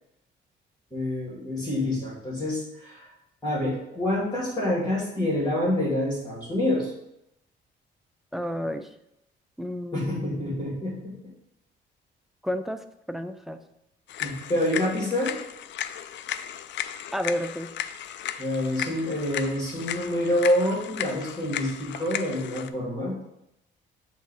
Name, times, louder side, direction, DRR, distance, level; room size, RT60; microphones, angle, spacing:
voice 1, 0.9-3.1 3.4-6.9 9.9-11.3 14.2-15.3 18.4-23.2, left 1 dB, 20° left, -6 dB, 2.5 m, -27 dB
voice 2, 8.3-8.9 9.6-10.7 12.4-13.6 14.8-14.9 17.1-17.7, equal, ahead, 8 dB, 0.5 m, -32 dB
sound 1, 14.1-22.7, left 10 dB, 65° left, 0.4 m, -35 dB
7.8 x 2.8 x 4.8 m, 0.83 s
cardioid pair, 90°, 20 cm